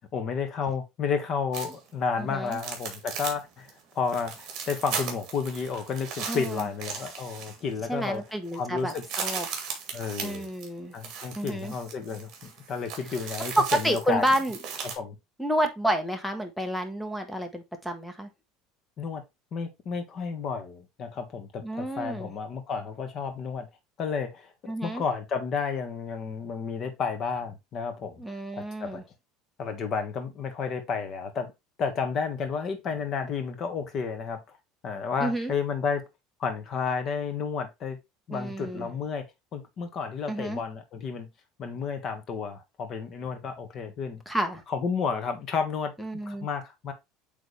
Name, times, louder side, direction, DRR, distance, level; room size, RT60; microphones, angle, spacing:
voice 1, 0.1-8.2 8.5-9.1 9.9-10.5 10.9-14.3 15.0-15.2 19.0-19.2 19.5-23.7 24.0-28.2 28.5-29.0 29.6-31.5 31.8-34.6 34.8-36.1 36.4-38.0 38.3-39.2 39.5-41.3 41.6-44.2 44.7-45.9 46.3-46.9, left 5 dB, 35° left, 1.4 m, -31 dB
sound 1, 1.5-1.9 2.5-3.4 3.7-3.8 4.1-7.8 8.1-8.2 8.5-15.0, right 6 dB, 45° right, 2.3 m, -37 dB
voice 2, 2.2-2.6 6.3-6.7 7.9-8.9 9.2-9.5 10.2-10.9 11.3-11.7 13.6-14.6 15.4-18.3 21.6-22.3 24.7-25.0 28.2-29.0 35.2-35.5 38.3-38.9 40.3-40.6 44.3-44.6 46.0-46.5, right 1 dB, ahead, 1.2 m, -29 dB
8.2 x 3.5 x 3.3 m
cardioid pair, 155°, 0 cm